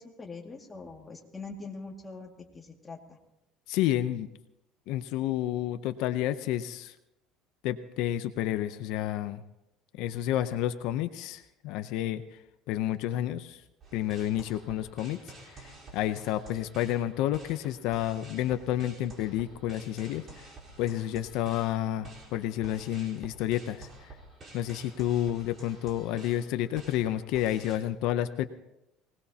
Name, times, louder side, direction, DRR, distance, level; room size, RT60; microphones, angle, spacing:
voice 1, 0.0-3.2, left 3 dB, 15° left, 0 dB, 2.2 m, -43 dB
voice 2, 3.7-4.3 4.9-6.9 7.6-9.4 10.0-12.4 12.7-13.6 13.9-15.2 15.4-20.5 20.8-24.1 24.5-28.4, left 12 dB, 70° left, 9 dB, 0.7 m, -30 dB
sound 1, 13.8-27.8, right 2 dB, 35° right, 4.2 m, -50 dB
24.0 x 19.0 x 2.9 m, 0.89 s
cardioid pair, 130°, 0 cm